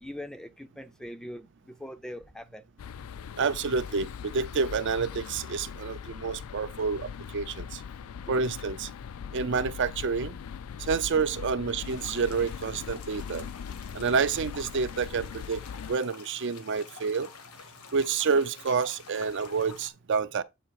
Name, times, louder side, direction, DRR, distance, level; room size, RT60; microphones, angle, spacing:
voice 1, 0.0-2.7 8.3-8.4, equal, 5° left, 0.4 m, -42 dB
sound 1, 2.8-16.0, left 7 dB, 70° left, 0.4 m, -40 dB
voice 2, 3.4-7.8 8.3-8.9 9.3-10.4 10.8-13.5 13.9-15.6 15.9-17.3 17.9-20.4, right 5 dB, 55° right, 0.5 m, -28 dB
sound 2, 11.8-19.9, left 5 dB, 90° left, 1.3 m, -48 dB
8.0 x 3.3 x 4.7 m
head